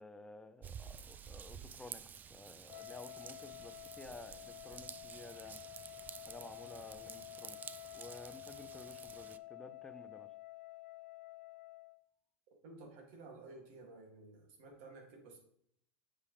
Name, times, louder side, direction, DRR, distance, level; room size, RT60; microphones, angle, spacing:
voice 1, 0.0-2.0 2.3-5.6 6.2-7.6 7.9-10.3, left 2 dB, 10° left, 9 dB, 0.7 m, -53 dB
Raindrop / Vehicle horn car horn honking / Trickle dribble, 0.6-9.4, right 7 dB, 25° right, 0.4 m, -51 dB
Wind instrument woodwind instrument, 2.6-12.0, left 19 dB, 80° left, 0.4 m, -51 dB
voice 2, 12.6-15.4, right 3 dB, 65° right, 1 dB, 2.3 m, -53 dB
8.3 x 5.0 x 3.2 m, 0.68 s
hypercardioid pair, 100°, 7 cm